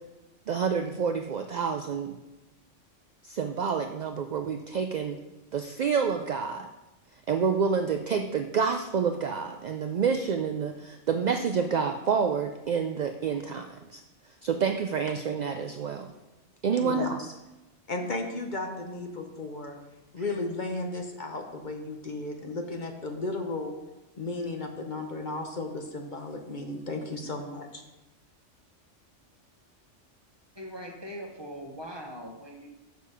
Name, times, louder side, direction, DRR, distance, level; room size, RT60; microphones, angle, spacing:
voice 1, 0.5-2.2 3.2-5.2 5.5-6.7 7.3-14.0 14.4-16.1 16.6-17.3, right 6 dB, 65° right, 7 dB, 0.4 m, -28 dB
voice 2, 16.8-17.1 17.9-19.8 20.1-23.7 24.2-27.8, left 2 dB, 45° left, 3 dB, 0.9 m, -34 dB
voice 3, 30.6-32.7, equal, 25° right, 1 dB, 1.0 m, -41 dB
6.6 x 6.6 x 5.0 m, 1.0 s
omnidirectional pair, 1.2 m